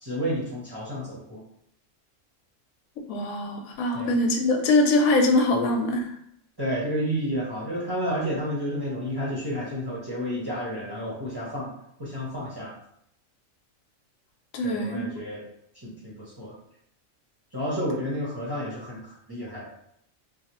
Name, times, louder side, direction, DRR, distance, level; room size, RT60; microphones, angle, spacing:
voice 1, 0.0-1.4 3.9-4.2 6.6-11.7 12.0-12.7 14.6-15.4 15.8-16.5 17.5-19.7, equal, 25° right, -6 dB, 0.6 m, -31 dB
voice 2, 3.1-6.1 14.5-15.1, left 2 dB, 85° left, 3 dB, 1.0 m, -23 dB
3.3 x 2.3 x 2.9 m, 0.73 s
omnidirectional pair, 1.4 m